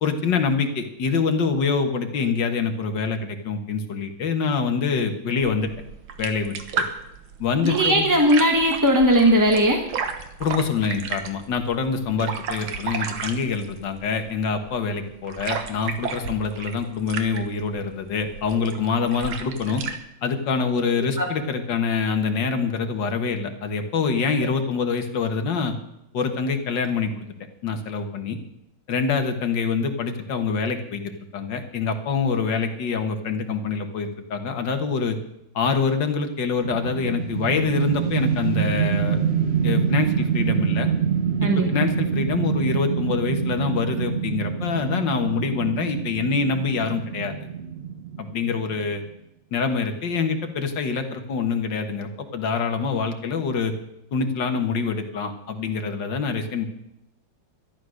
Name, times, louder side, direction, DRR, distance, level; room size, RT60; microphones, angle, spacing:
voice 1, 0.0-5.7 6.2-6.8 7.4-8.1 10.4-19.8 20.2-25.7 26.1-27.2 27.6-28.4 28.9-31.0 31.3-35.2 35.6-39.2 39.6-40.9 41.4-47.3 48.2-49.0 49.5-53.7 54.1-56.7, left 5 dB, 60° left, 6 dB, 2.0 m, -25 dB
sound 1, 5.4-20.0, right 6 dB, 75° right, 2.0 m, -34 dB
voice 2, 7.6-9.8 21.2-21.3 41.4-41.8, equal, 10° right, 2 dB, 1.0 m, -18 dB
sound 2, 36.6-48.9, right 7 dB, 50° right, 0.7 m, -25 dB
13.0 x 11.5 x 6.4 m, 0.82 s
omnidirectional pair, 2.3 m